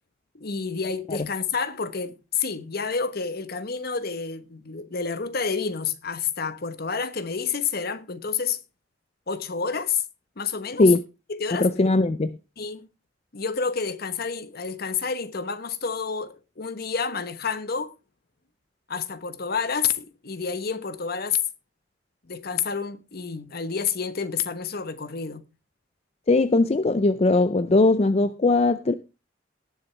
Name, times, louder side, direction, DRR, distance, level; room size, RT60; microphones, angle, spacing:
voice 1, 0.3-8.6 9.3-10.0 10.4-10.9 11.3-11.7 12.6-12.9 13.3-17.9 18.9-21.4 22.3-25.4, left 6 dB, 55° left, 1.1 m, -29 dB
voice 2, 11.6-12.4 26.3-28.9, left 2 dB, 35° left, 0.5 m, -20 dB
18.5 x 6.9 x 3.3 m
head